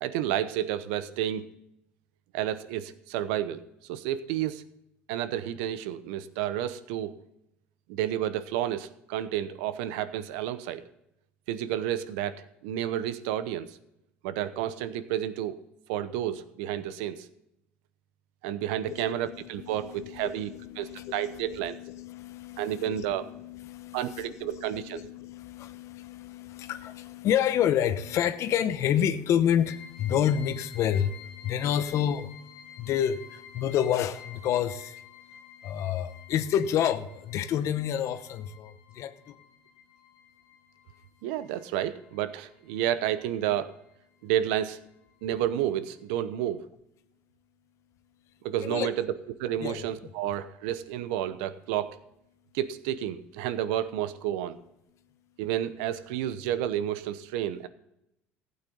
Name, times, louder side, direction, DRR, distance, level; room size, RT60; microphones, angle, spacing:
voice 1, 0.0-1.5 2.3-4.6 5.1-7.1 7.9-10.8 11.5-13.8 14.2-15.5 15.9-17.3 18.4-20.5 20.8-21.8 22.6-23.3 23.9-25.0 41.2-43.7 44.2-44.8 45.2-46.7 48.4-49.1 49.4-52.0 52.5-54.6 55.4-57.7, right 11 dB, 80° right, 0.8 m, -31 dB
voice 2, 18.9-39.4 48.6-48.9 49.6-50.1, left 9 dB, 60° left, 0.9 m, -29 dB
sound 1, 29.6-43.9 44.2-45.3 45.6-45.7 46.1-46.2, left 7 dB, 85° left, 2.1 m, -51 dB
15.0 x 8.8 x 3.9 m
supercardioid pair, 85°, 6 cm